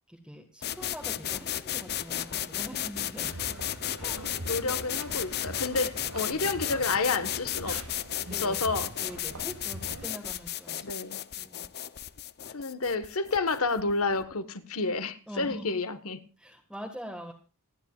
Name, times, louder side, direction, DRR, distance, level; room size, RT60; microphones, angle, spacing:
voice 1, 0.1-3.5 4.0-4.3 8.2-8.7 9.0-10.9 11.4-11.6 15.3-15.7 16.4-17.3, equal, 5° right, 1.7 m, -43 dB
sound 1, 0.6-14.3, left 11 dB, 45° left, 0.7 m, -34 dB
sound 2, 3.2-10.1, right 2 dB, 75° right, 1.7 m, -43 dB
voice 2, 4.2-7.8 8.3-8.9 10.8-11.2 12.5-16.2, left 3 dB, 70° left, 1.4 m, -30 dB
27.0 x 10.0 x 2.4 m
head